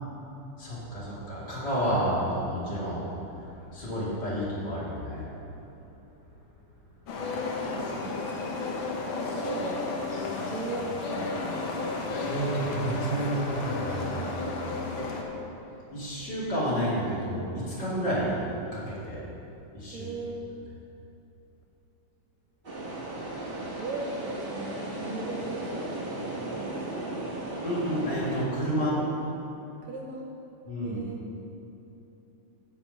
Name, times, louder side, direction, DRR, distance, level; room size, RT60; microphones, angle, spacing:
voice 1, 0.6-5.3 12.3-15.1 15.9-18.4 18.7-19.2 19.7-20.1 27.6-28.9 30.6-31.0, right 1 dB, 35° left, -8 dB, 3.1 m, -30 dB
sound 1, 7.1-15.2, left 3 dB, 65° left, 1.2 m, -32 dB
voice 2, 7.7-8.1 9.1-9.8 10.3-11.9 19.9-20.4 23.8-27.1 28.7-29.1 29.8-30.2 30.8-31.2, right 3 dB, 70° right, 0 dB, 2.1 m, -38 dB
sound 2, 22.6-28.5, right 2 dB, 40° right, 0.8 m, -36 dB
9.7 x 5.6 x 7.8 m, 3.0 s
omnidirectional pair, 3.5 m